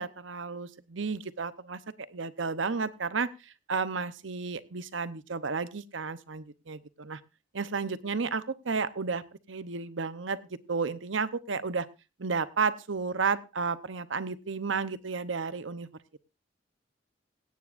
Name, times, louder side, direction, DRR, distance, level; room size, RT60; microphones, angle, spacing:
voice 1, 0.0-1.8 2.1-3.3 3.7-7.2 7.5-11.9 12.2-15.9, right 5 dB, 80° right, 14 dB, 0.9 m, -32 dB
17.0 x 17.0 x 2.6 m, 0.29 s
head